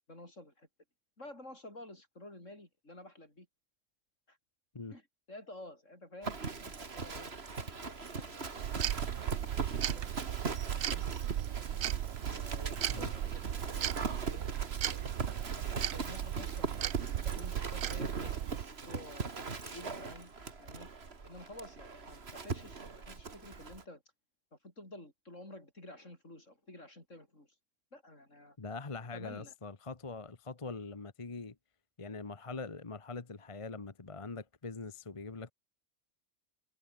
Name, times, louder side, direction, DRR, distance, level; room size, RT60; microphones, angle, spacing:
voice 1, 0.1-0.7 1.2-3.5 4.3-4.4 4.9-8.7 9.1-10.1 10.7-11.1 12.3-14.5 15.2-19.3 19.6-20.9 21.2-24.0 24.5-27.5 27.9-28.6 29.1-29.5, left 1 dB, 70° left, 8.3 m, -51 dB
Livestock farm animals working animals, 6.2-23.8, right 4 dB, 50° right, 2.2 m, -40 dB
sound 1, 8.6-18.7, right 11 dB, 85° right, 1.2 m, -36 dB
voice 2, 28.6-31.6 32.0-35.5, left 3 dB, 25° left, 1.1 m, -43 dB
omnidirectional pair, 1.3 m